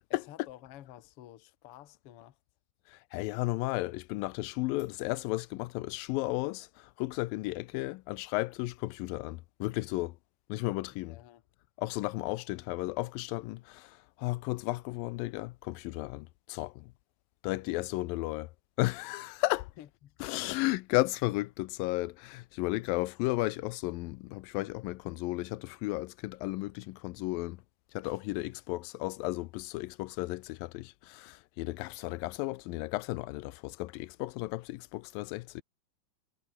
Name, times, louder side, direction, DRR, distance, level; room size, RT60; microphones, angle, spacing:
voice 1, 0.1-2.4 10.9-11.4 19.8-20.2, left 13 dB, 60° left, 1.6 m, -51 dB
voice 2, 2.9-10.2 10.5-11.2 11.8-16.9 17.4-18.5 18.8-19.7 20.2-27.6 27.9-35.6, left 20 dB, 85° left, 2.4 m, -34 dB
omnidirectional pair, 4.0 m